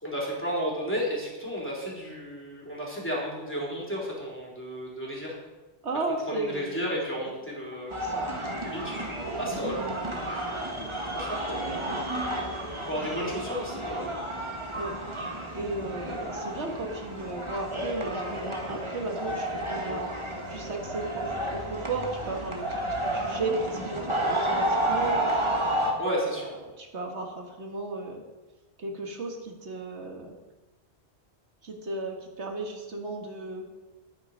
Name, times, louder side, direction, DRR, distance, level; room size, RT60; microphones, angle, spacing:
voice 1, 0.0-5.3 6.3-8.0 8.6-9.0 9.4-9.8 11.1-11.6 12.8-14.1 26.0-26.5, equal, 10° left, -5 dB, 3.7 m, -32 dB
voice 2, 5.8-6.8 7.9-8.3 11.9-12.0 14.7-15.0 15.6-20.1 20.5-25.6 26.8-28.2 28.8-30.4 31.6-33.7, right 2 dB, 80° right, 2 dB, 1.7 m, -35 dB
sound 1, 7.9-25.9, right 1 dB, 25° right, 1.7 m, -31 dB
12.0 x 9.3 x 5.5 m, 1.2 s
omnidirectional pair, 1.1 m